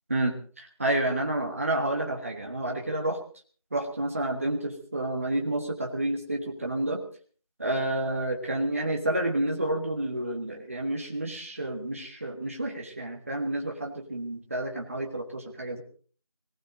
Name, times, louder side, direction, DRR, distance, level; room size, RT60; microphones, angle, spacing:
voice 1, 0.1-3.2 3.7-7.0 7.6-15.8, right 1 dB, 25° right, 1 dB, 1.6 m, -30 dB
19.0 x 18.5 x 3.9 m, 0.42 s
figure-of-eight pair, 175°, 18 cm